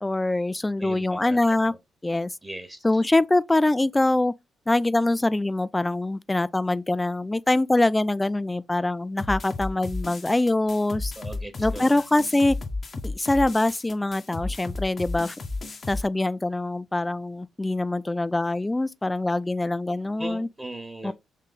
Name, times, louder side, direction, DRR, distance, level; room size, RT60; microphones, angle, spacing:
voice 1, 0.0-1.7 2.0-2.3 2.8-4.3 4.7-11.1 11.6-12.6 13.0-15.3 15.9-20.5 21.0-21.1, left 2 dB, 20° left, 0.3 m, -24 dB
voice 2, 0.8-1.8 2.4-3.0 11.2-12.0 20.2-21.1, right 1 dB, 15° right, 1.1 m, -39 dB
sound 1, 9.2-16.0, left 3 dB, 45° left, 0.9 m, -33 dB
3.7 x 3.1 x 3.9 m
hypercardioid pair, 40°, 0 cm